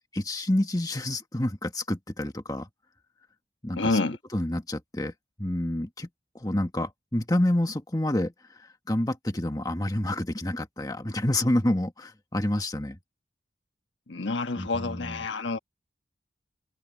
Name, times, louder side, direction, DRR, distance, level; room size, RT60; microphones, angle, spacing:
voice 1, 0.1-2.7 3.6-4.0 4.3-5.1 5.4-6.1 6.4-8.3 8.9-13.0 14.6-15.2, left 1 dB, 20° left, 1.6 m, -28 dB
voice 2, 3.8-4.2 14.1-15.6, left 3 dB, 75° left, 1.4 m, -28 dB
head